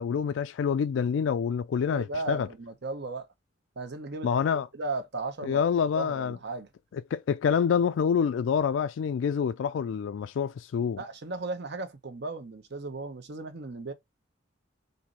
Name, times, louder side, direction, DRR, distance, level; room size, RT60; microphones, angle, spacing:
voice 1, 0.0-2.5 4.2-4.7 5.4-6.4 6.9-11.0, left 7 dB, 70° left, 0.3 m, -27 dB
voice 2, 1.9-3.3 3.8-4.3 4.7-5.6 6.0-6.7 11.0-13.9, right 3 dB, 60° right, 0.9 m, -36 dB
4.4 x 2.7 x 3.9 m
head